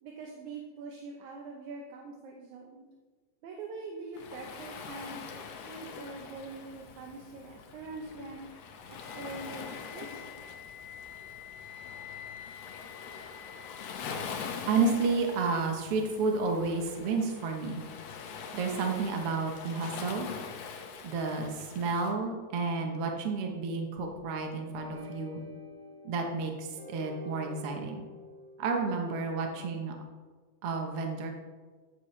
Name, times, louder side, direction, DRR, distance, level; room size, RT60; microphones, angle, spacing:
voice 1, 0.0-2.8 3.4-8.4 9.0-10.3, right 3 dB, 80° right, 1 dB, 2.3 m, -44 dB
Waves surf, 4.1-22.1, left 6 dB, 70° left, 2.0 m, -44 dB
Wind instrument woodwind instrument, 9.0-14.9, left 9 dB, 85° left, 2.3 m, -48 dB
voice 2, 14.7-17.8 18.5-20.3 21.0-25.4 26.0-28.0 28.6-30.0 30.6-31.3, right 4 dB, 60° right, 2 dB, 1.8 m, -31 dB
sound 1, 24.7-29.8, left 2 dB, 15° right, 2.1 m, -48 dB
13.5 x 9.4 x 3.3 m, 1.4 s
omnidirectional pair, 3.4 m